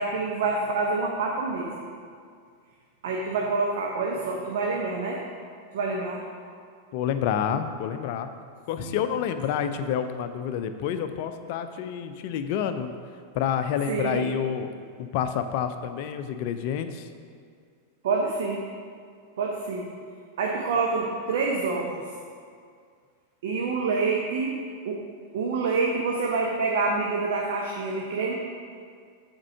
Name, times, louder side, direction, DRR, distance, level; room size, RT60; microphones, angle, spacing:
voice 1, 0.0-1.7 3.0-5.2 5.7-6.2 8.8-9.0 13.9-14.3 18.0-18.6 19.4-19.9 20.4-22.0 23.4-24.5 24.8-25.0 25.3-28.3, right 4 dB, 55° right, -1 dB, 0.7 m, -27 dB
voice 2, 6.9-8.3 8.7-12.9 13.3-14.7 15.0-17.1, left 8 dB, 45° left, 9 dB, 0.5 m, -28 dB
7.4 x 4.5 x 6.0 m, 2.2 s
figure-of-eight pair, 90°, 0 cm